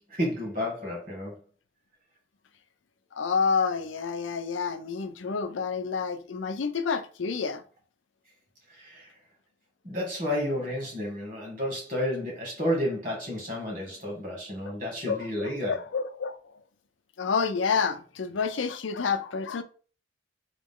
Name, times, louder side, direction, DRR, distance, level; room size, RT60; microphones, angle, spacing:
voice 1, 0.1-1.3 8.7-9.1 9.8-15.8, equal, 45° right, 2.1 m, -31 dB
voice 2, 3.1-7.6 15.1-16.4 17.2-19.6, left 5 dB, 85° left, 0.5 m, -29 dB
3.9 x 3.2 x 3.6 m
head